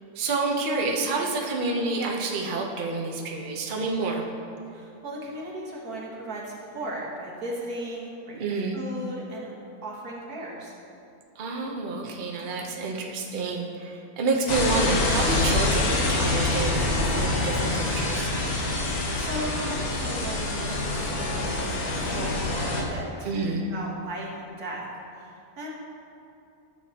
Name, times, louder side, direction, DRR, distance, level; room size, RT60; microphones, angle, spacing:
voice 1, 0.1-4.2 8.3-8.8 11.4-18.3 23.2-23.7, right 3 dB, 40° right, 0 dB, 0.8 m, -28 dB
voice 2, 4.7-9.5 9.8-10.7 18.7-24.9 25.2-25.7, right 1 dB, 85° right, -4 dB, 1.9 m, -37 dB
sound 1, 14.5-22.8, left 2 dB, 80° left, 1.5 m, -26 dB
12.0 x 7.1 x 2.9 m, 2.8 s
omnidirectional pair, 1.5 m